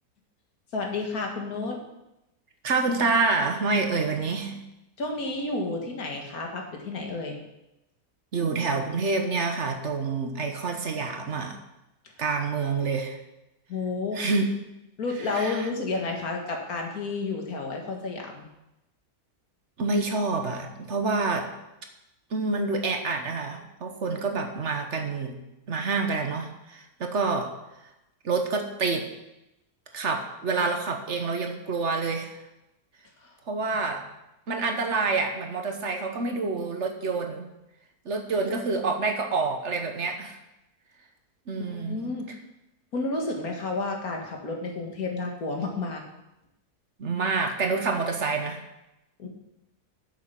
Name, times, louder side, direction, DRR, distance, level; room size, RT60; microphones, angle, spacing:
voice 1, 0.7-1.8 5.0-7.4 13.7-14.2 15.0-18.5 33.2-33.3 41.7-42.4 42.9-46.0 49.2-49.3, left 3 dB, 65° left, 1 dB, 2.2 m, -31 dB
voice 2, 2.6-4.7 8.3-11.6 12.2-13.2 14.1-14.5 15.3-15.6 19.8-21.5 22.3-25.4 25.7-27.5 28.2-29.0 29.9-32.4 33.5-34.0 34.5-37.5 38.0-40.4 41.5-42.0 47.0-48.6, right 4 dB, 50° right, 5 dB, 1.3 m, -27 dB
8.6 x 7.6 x 5.9 m, 0.91 s
omnidirectional pair, 1.7 m